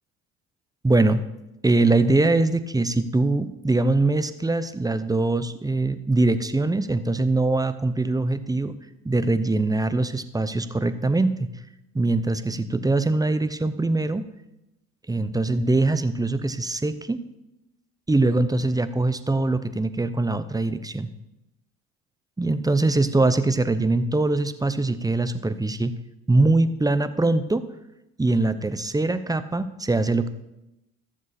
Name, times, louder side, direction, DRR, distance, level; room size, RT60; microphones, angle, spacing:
voice 1, 0.8-1.2 1.6-8.8 9.0-11.5 11.9-14.2 15.1-17.2 18.1-21.1 22.4-25.9 26.3-27.7 28.2-30.3, right 2 dB, 10° right, 12 dB, 0.7 m, -22 dB
13.5 x 7.4 x 4.3 m, 0.92 s
supercardioid pair, 75°, 37 cm